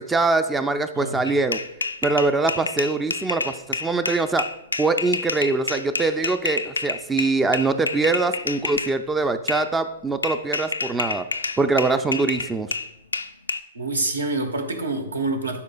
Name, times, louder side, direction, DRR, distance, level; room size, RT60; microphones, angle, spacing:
voice 1, 0.0-1.6 2.0-4.4 4.8-11.2 11.6-12.7, right 3 dB, 10° right, 10 dB, 0.3 m, -23 dB
sound 1, 1.2-8.9 9.5-9.7 10.2-13.6, left 3 dB, 80° left, 0.4 m, -28 dB
voice 2, 13.7-15.6, right 2 dB, 80° right, 6 dB, 1.0 m, -26 dB
11.5 x 4.8 x 2.2 m, 0.87 s
figure-of-eight pair, 110°, 0 cm